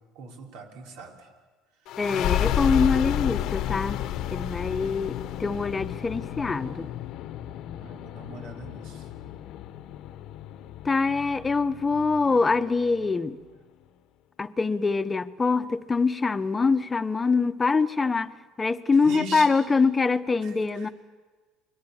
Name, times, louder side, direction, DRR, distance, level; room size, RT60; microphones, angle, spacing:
voice 1, 0.2-1.1 7.8-9.0 19.0-19.5, right 2 dB, 80° right, 5.5 m, -39 dB
sound 1, 1.9-13.1, left 12 dB, 65° left, 1.1 m, -31 dB
voice 2, 2.0-4.0 4.3-6.9 10.8-13.4 14.4-20.9, left 4 dB, 20° left, 1.0 m, -24 dB
29.5 x 22.0 x 7.4 m
supercardioid pair, 100°, 0 cm